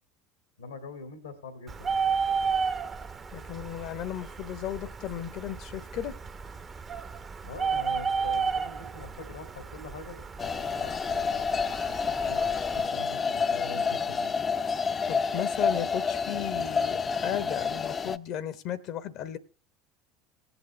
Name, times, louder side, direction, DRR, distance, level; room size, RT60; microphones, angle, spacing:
voice 1, 0.6-2.0 7.4-14.3, left 3 dB, 90° left, 8 dB, 1.9 m, -44 dB
Bird, 1.7-12.9, right 5 dB, 30° right, 0.8 m, -33 dB
voice 2, 3.3-6.2 15.1-19.4, left 10 dB, 55° left, 15 dB, 0.9 m, -35 dB
sound 1, 10.4-18.2, left 5 dB, 30° left, 0.5 m, -29 dB
18.5 x 8.1 x 3.0 m, 0.38 s
hypercardioid pair, 75°, 0 cm